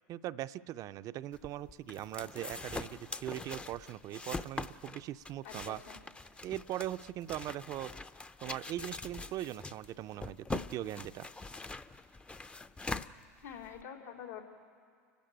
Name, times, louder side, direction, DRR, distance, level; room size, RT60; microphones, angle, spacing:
voice 1, 0.1-5.8 6.4-7.9 8.4-11.3, right 13 dB, 40° right, 13 dB, 0.5 m, -40 dB
sound 1, 1.3-13.8, left 3 dB, 10° left, 0.5 m, -43 dB
voice 2, 5.4-6.0 13.4-14.4, left 8 dB, 85° left, -2 dB, 3.3 m, -46 dB
29.5 x 12.5 x 9.0 m, 2.2 s
hypercardioid pair, 95°, 9 cm